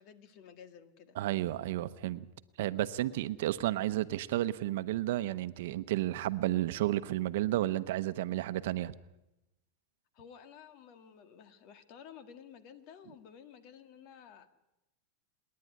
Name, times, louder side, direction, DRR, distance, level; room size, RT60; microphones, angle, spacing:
voice 1, 0.0-1.2 10.1-14.5, left 8 dB, 55° left, 1.9 m, -53 dB
voice 2, 1.2-2.2 2.6-8.9, right 14 dB, 70° right, 0.9 m, -32 dB
26.5 x 10.5 x 9.7 m
supercardioid pair, 125°, 0 cm